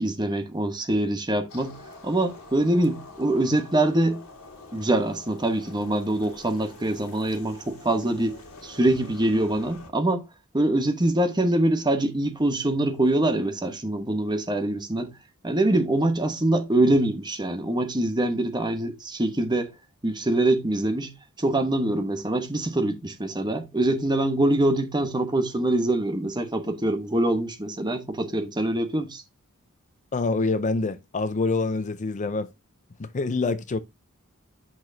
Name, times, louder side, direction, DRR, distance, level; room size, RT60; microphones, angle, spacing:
voice 1, 0.0-1.8 2.0-4.2 4.7-10.2 10.5-15.1 15.4-19.7 20.0-21.1 21.4-29.2, right 1 dB, 20° right, 1.2 m, -24 dB
sound 1, 1.5-9.9, left 2 dB, 70° left, 2.2 m, -46 dB
voice 2, 30.1-32.5 33.0-33.8, left 3 dB, 35° left, 0.5 m, -26 dB
8.7 x 6.1 x 2.7 m
head